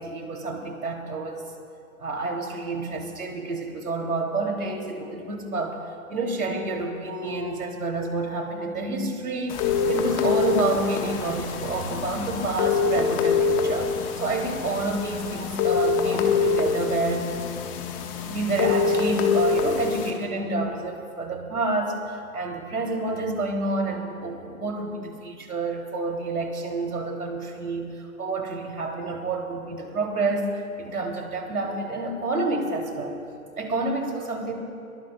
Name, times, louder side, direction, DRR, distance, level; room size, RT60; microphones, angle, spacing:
voice 1, 0.0-1.4 2.0-5.8 6.1-17.3 18.2-22.0 22.3-27.9 28.2-33.2 33.6-34.5, right 2 dB, 75° right, 2 dB, 3.3 m, -29 dB
sound 1, 9.5-20.1, left 5 dB, 25° left, 1.5 m, -25 dB
23.0 x 22.5 x 2.4 m, 2.5 s
figure-of-eight pair, 140°, 45 cm